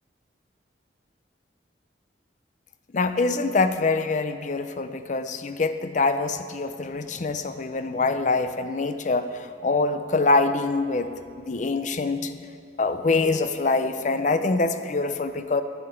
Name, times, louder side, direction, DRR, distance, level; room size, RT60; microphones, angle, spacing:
voice 1, 2.9-11.1 11.4-12.4 12.8-15.6, left 3 dB, 40° left, 10 dB, 0.5 m, -24 dB
9.4 x 8.4 x 6.7 m, 2.3 s
head